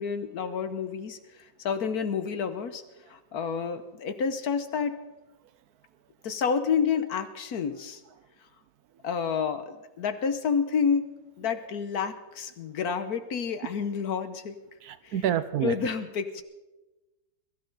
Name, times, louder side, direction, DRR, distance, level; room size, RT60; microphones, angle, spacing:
voice 1, 0.0-2.8 3.1-5.0 6.2-8.0 9.0-11.1 11.4-14.6 15.0-15.2 15.6-16.4, left 6 dB, 65° left, 9 dB, 1.4 m, -29 dB
voice 2, 14.8-15.8, right 10 dB, 70° right, 14 dB, 1.1 m, -28 dB
22.5 x 13.5 x 4.0 m, 1.1 s
omnidirectional pair, 1.8 m